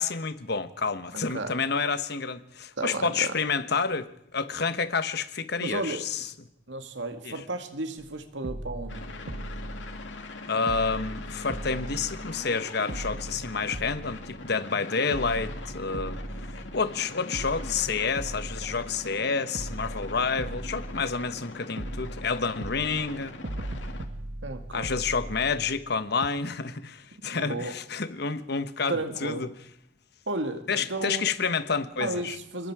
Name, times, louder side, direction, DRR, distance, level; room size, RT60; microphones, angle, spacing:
voice 1, 0.0-6.3 7.2-7.4 10.5-16.2 16.7-23.4 24.7-29.5 30.7-32.4, left 5 dB, 60° left, 1.2 m, -29 dB
voice 2, 2.8-3.3 5.6-6.0 6.7-9.0 24.4-24.9 27.2-27.8 28.9-29.5 30.3-31.2 32.0-32.7, right 2 dB, 80° right, 2.3 m, -33 dB
sound 1, 8.0-8.1 8.4-10.4 10.7-12.6 12.9-14.7 15.1-17.0 17.3-19.2 19.5-21.5 21.8-25.9 26.2-26.3, right 1 dB, 65° right, 1.2 m, -38 dB
sound 2, 8.9-24.1, left 3 dB, 80° left, 2.4 m, -42 dB
26.0 x 21.5 x 4.9 m
head